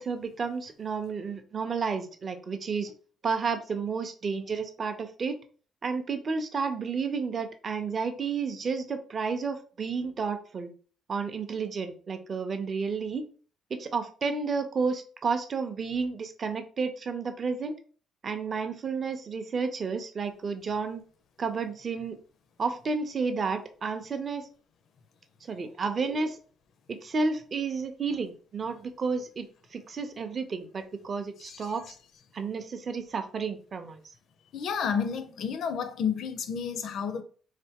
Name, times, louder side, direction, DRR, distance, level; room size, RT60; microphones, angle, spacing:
voice 1, 0.0-2.9 3.2-5.4 5.8-10.7 11.1-13.3 13.7-17.7 18.2-21.0 21.4-22.2 22.6-24.5 25.4-26.4 26.9-31.9 32.3-34.0, right 5 dB, 30° right, 0.5 m, -31 dB
voice 2, 31.4-31.7 34.5-37.2, left 7 dB, 55° left, 0.5 m, -31 dB
3.7 x 3.3 x 2.8 m
cardioid pair, 155°, 0 cm